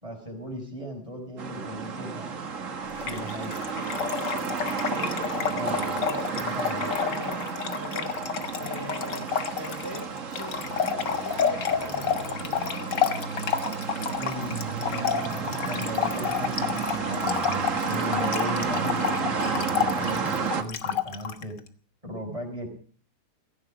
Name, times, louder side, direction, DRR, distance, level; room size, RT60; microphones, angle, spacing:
voice 1, 0.0-2.4 3.0-3.5 5.5-6.1 6.3-6.9 14.1-21.6 22.0-22.7, equal, 20° right, 2 dB, 5.3 m, -36 dB
sound 1, 1.4-20.6, right 5 dB, 50° right, 1.8 m, -32 dB
Trickle dribble / Fill (with liquid), 3.0-21.4, left 8 dB, 90° left, 2.0 m, -30 dB
voice 2, 4.2-5.1 5.6-6.3 6.7-7.5 7.8-8.1 8.6-10.1 10.4-13.2, equal, 10° left, 1 dB, 3.4 m, -41 dB
16.0 x 16.0 x 5.0 m, 0.44 s
omnidirectional pair, 1.8 m